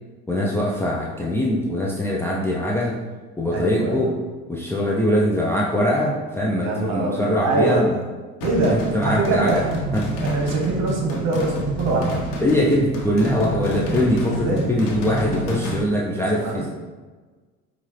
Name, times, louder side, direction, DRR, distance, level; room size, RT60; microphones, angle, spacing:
voice 1, 0.3-3.0 3.4-4.2 4.5-7.9 8.6-9.6 9.9-10.1 12.4-16.7, left 1 dB, 10° left, -4 dB, 0.6 m, -22 dB
voice 2, 3.5-4.1 6.6-7.8 8.4-9.6 10.2-12.3 14.2-14.7 16.1-16.7, right 3 dB, 55° right, 0 dB, 1.3 m, -24 dB
sound 1, 8.4-15.8, equal, 75° left, 1.1 m, -28 dB
5.5 x 2.5 x 3.3 m, 1.4 s
supercardioid pair, 80°, 31 cm